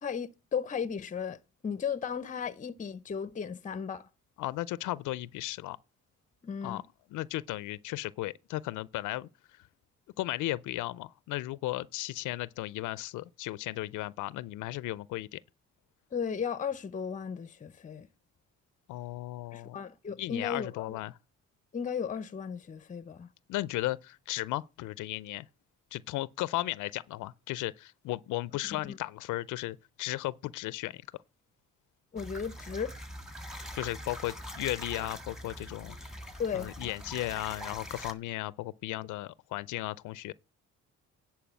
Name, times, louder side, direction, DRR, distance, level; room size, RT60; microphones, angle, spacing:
voice 1, 0.0-4.1 6.4-6.8 16.1-18.1 19.5-21.0 21.7-23.3 28.9-29.0 32.1-33.0 36.4-36.7, left 7 dB, 25° left, 0.6 m, -35 dB
voice 2, 4.4-5.8 6.6-6.8 7.1-9.3 10.2-15.4 18.9-19.8 20.2-21.2 23.5-25.5 25.9-31.0 33.7-36.0 36.5-40.3, left 17 dB, 80° left, 0.5 m, -35 dB
sound 1, 32.2-38.1, equal, ahead, 1.6 m, -43 dB
10.5 x 4.6 x 7.3 m
cardioid pair, 90°, 30 cm